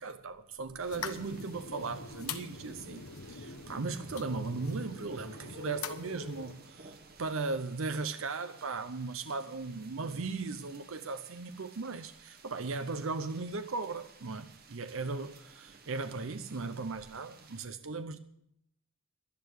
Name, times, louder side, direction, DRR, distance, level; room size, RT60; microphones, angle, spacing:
voice 1, 0.0-3.0 3.3-6.9 7.2-18.2, right 3 dB, 65° right, 0.7 m, -37 dB
sound 1, 0.8-17.7, right 4 dB, 45° right, 1.5 m, -57 dB
sound 2, 0.9-6.5, left 5 dB, 75° left, 1.1 m, -43 dB
11.5 x 11.5 x 6.5 m
head